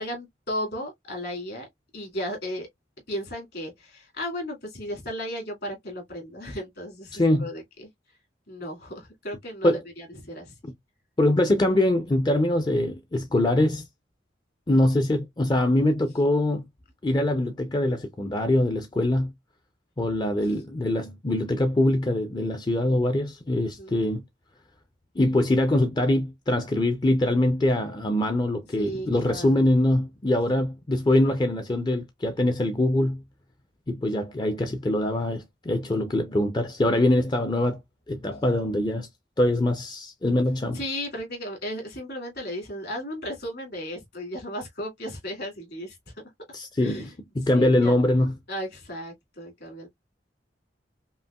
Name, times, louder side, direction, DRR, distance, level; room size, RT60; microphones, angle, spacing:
voice 1, 0.0-1.7 1.9-2.7 3.1-7.9 8.5-10.5 23.8-24.0 28.8-29.6 30.5-30.6 40.7-46.0 46.8-47.1 47.5-48.1 48.5-49.9, equal, 60° left, 2.3 m, -35 dB
voice 2, 7.1-7.5 9.6-9.8 11.2-13.9 14.7-16.6 17.0-19.3 20.0-24.2 25.2-33.2 33.9-37.8 38.1-39.1 39.4-40.8 46.5-48.3, left 1 dB, 25° left, 0.5 m, -23 dB
5.4 x 2.5 x 2.2 m
head